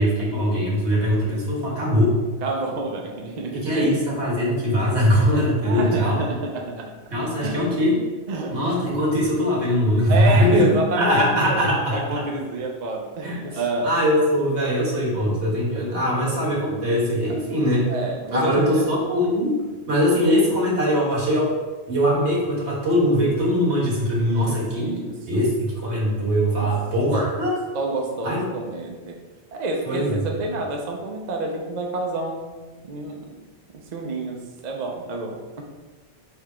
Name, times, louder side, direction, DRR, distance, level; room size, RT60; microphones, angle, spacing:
voice 1, 0.0-2.2 3.5-6.2 7.1-8.0 8.5-10.7 10.9-12.2 13.2-13.4 13.8-17.8 18.3-19.6 19.9-21.5 21.9-24.9 25.3-27.6 28.2-28.5 29.8-30.4, equal, 80° right, -5 dB, 1.6 m, -21 dB
voice 2, 2.4-3.9 5.3-6.9 7.4-7.6 8.3-8.8 10.1-11.6 11.9-13.9 15.3-15.4 15.9-16.4 17.9-18.9 24.2-25.5 26.6-26.7 27.1-27.3 27.7-29.2 29.5-32.6 32.8-33.4 33.7-35.6, right 2 dB, 50° right, 1 dB, 0.6 m, -29 dB
3.4 x 3.2 x 4.8 m, 1.3 s
omnidirectional pair, 1.1 m